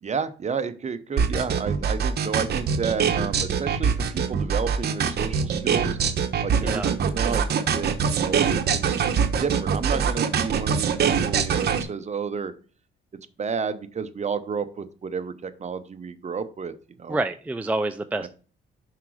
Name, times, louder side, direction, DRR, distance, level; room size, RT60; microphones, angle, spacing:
voice 1, 0.0-6.0 6.4-9.0 9.3-12.5 13.4-16.7 17.0-17.2, right 6 dB, 35° right, 0.8 m, -31 dB
sound 1, 1.2-11.8, right 6 dB, 55° right, 1.0 m, -23 dB
voice 2, 6.6-7.0 17.1-18.3, right 2 dB, 5° right, 0.4 m, -27 dB
5.8 x 4.8 x 4.7 m
cardioid pair, 90°, 20 cm